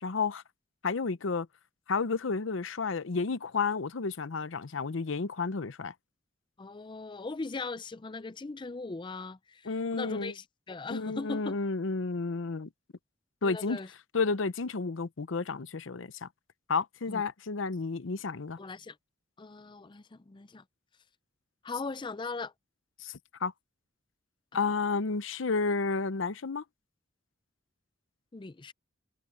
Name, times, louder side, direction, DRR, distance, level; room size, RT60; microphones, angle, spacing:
voice 1, 0.0-0.4 0.8-1.5 1.9-5.9 9.7-10.3 10.9-12.7 13.4-13.8 14.1-16.3 16.7-18.6 23.0-23.1 23.4-23.5 24.5-26.6, left 4 dB, 90° left, 0.7 m, -31 dB
voice 2, 6.6-11.6 13.4-13.9 17.1-17.2 18.6-19.0 19.4-20.6 21.6-22.5 24.5-24.6 28.3-28.7, left 3 dB, 25° left, 0.5 m, -39 dB
head